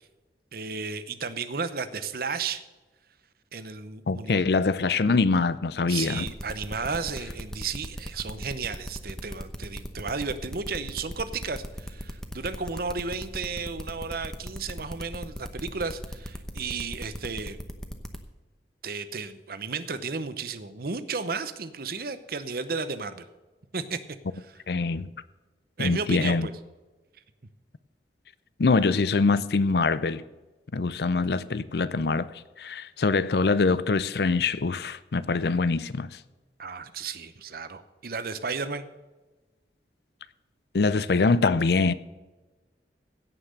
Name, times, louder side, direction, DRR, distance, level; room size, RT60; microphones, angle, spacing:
voice 1, 0.5-2.6 3.5-4.4 5.9-17.6 18.8-23.3 23.7-24.0 24.3-24.6 25.8-26.5 36.6-38.8, right 4 dB, 55° right, 0.8 m, -33 dB
voice 2, 4.1-6.3 24.7-25.1 25.8-26.5 28.6-30.2 30.7-32.3 32.6-36.1 40.7-41.9, left 4 dB, 60° left, 0.5 m, -24 dB
sound 1, 6.2-18.2, equal, 5° left, 0.9 m, -37 dB
16.5 x 5.9 x 6.5 m
head